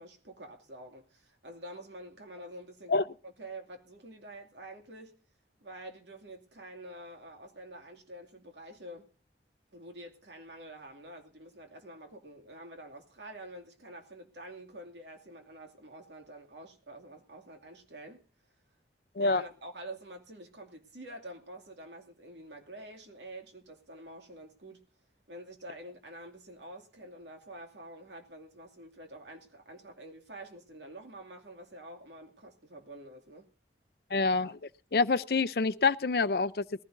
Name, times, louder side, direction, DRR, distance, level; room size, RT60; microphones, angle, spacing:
voice 1, 0.0-5.2 5.6-9.1 9.7-18.2 19.2-24.8 25.3-33.5, right 1 dB, 80° right, 2.5 m, -47 dB
voice 2, 34.1-34.6 34.9-36.8, left 4 dB, 60° left, 0.6 m, -27 dB
21.0 x 15.5 x 2.7 m
head